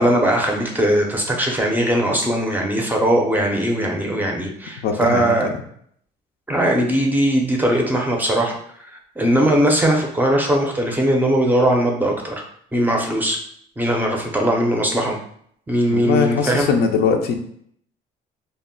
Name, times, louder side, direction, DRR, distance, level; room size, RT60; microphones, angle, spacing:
voice 1, 0.0-5.5 6.5-12.4 12.7-13.4 13.8-15.2 15.7-16.7, right 1 dB, 10° right, 1 dB, 0.5 m, -19 dB
voice 2, 4.8-5.4 15.9-17.3, left 6 dB, 70° left, 4 dB, 0.4 m, -21 dB
2.0 x 2.0 x 3.6 m, 0.65 s
cardioid pair, 110°, 17 cm